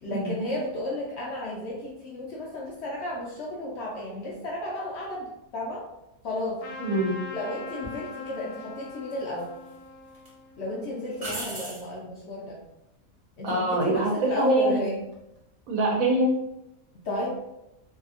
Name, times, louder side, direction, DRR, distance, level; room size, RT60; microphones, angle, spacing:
voice 1, 0.0-5.8 6.2-6.6 7.3-9.5 10.6-12.6 13.4-15.0 17.0-17.4, left 1 dB, 65° left, -3 dB, 0.7 m, -32 dB
Trumpet, 6.6-11.6, left 3 dB, 90° left, 1.1 m, -42 dB
voice 2, 6.8-7.2 13.4-14.8 15.7-16.3, right 2 dB, 75° right, 0 dB, 1.0 m, -24 dB
sound 1, 7.8-8.0 9.1-9.7 10.1-10.3 11.2-11.9 15.0-15.4, right 1 dB, 45° right, 0.5 m, -37 dB
2.7 x 2.4 x 2.5 m, 0.89 s
omnidirectional pair, 1.5 m